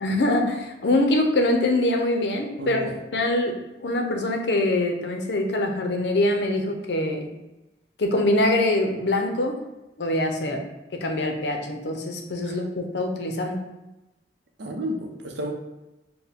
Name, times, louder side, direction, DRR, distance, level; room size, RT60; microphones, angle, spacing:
voice 1, 0.0-7.3 8.0-9.6 10.0-10.6 10.9-13.6, left 1 dB, 75° left, 3 dB, 0.6 m, -24 dB
voice 2, 2.6-3.0 10.4-10.6 12.4-12.6 14.6-15.5, equal, 80° right, 2 dB, 0.6 m, -32 dB
4.6 x 2.1 x 3.5 m, 0.99 s
head